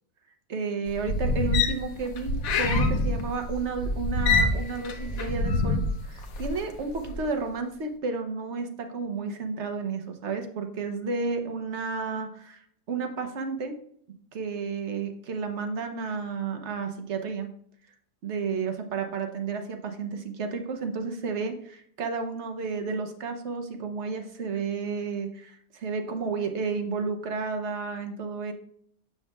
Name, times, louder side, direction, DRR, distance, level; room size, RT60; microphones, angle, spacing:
voice 1, 0.5-13.7 14.3-17.5 18.2-28.5, right 4 dB, 50° right, 5 dB, 1.1 m, -32 dB
sound 1, 0.9-6.6 7.0-7.3, left 2 dB, 65° left, 1.2 m, -26 dB
7.2 x 7.2 x 2.3 m, 0.65 s
omnidirectional pair, 1.7 m